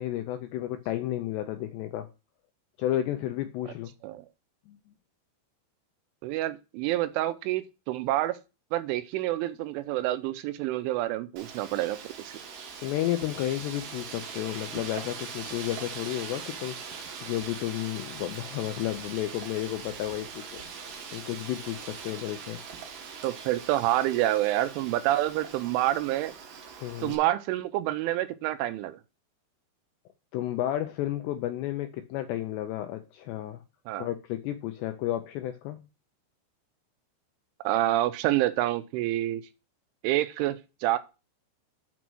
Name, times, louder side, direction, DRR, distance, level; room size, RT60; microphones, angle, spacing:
voice 1, 0.0-2.1 2.8-3.9 4.7-4.8 12.8-22.6 26.8-27.2 30.3-33.6 34.0-35.8, left 13 dB, 80° left, 7 dB, 2.5 m, -32 dB
voice 2, 6.2-8.4 8.7-12.0 12.3-12.4 23.2-26.3 27.0-29.0 33.9-34.1 37.6-39.4 40.0-41.0, right 15 dB, 85° right, 13 dB, 3.1 m, -27 dB
Wind, 11.4-27.2, right 6 dB, 60° right, 2.5 m, -42 dB
6.7 x 6.2 x 6.1 m, 0.30 s
omnidirectional pair, 5.5 m